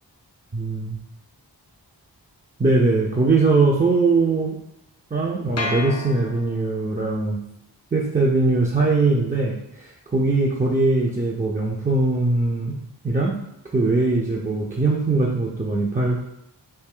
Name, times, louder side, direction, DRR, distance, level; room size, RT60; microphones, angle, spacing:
voice 1, 0.5-1.0 2.6-4.6 5.1-7.4 7.9-12.8 13.0-13.4 13.7-16.2, right 3 dB, 20° right, -3 dB, 0.4 m, -21 dB
sound 1, 5.6-6.9, left 3 dB, 40° left, 0.4 m, -31 dB
3.2 x 2.5 x 3.6 m, 0.79 s
wide cardioid pair, 50°, 44 cm